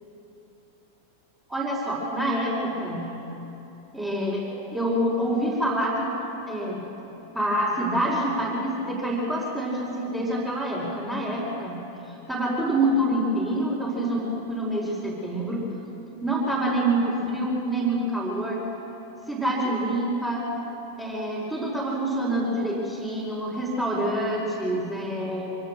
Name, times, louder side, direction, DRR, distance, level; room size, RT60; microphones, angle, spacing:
voice 1, 1.5-3.1 3.9-4.4 4.7-6.1 6.5-6.8 7.3-11.8 12.3-15.6 16.2-18.6 19.3-20.4 21.0-25.6, right 1 dB, 10° right, -7 dB, 4.4 m, -26 dB
25.0 x 17.5 x 6.6 m, 3.0 s
figure-of-eight pair, 90°, 0 cm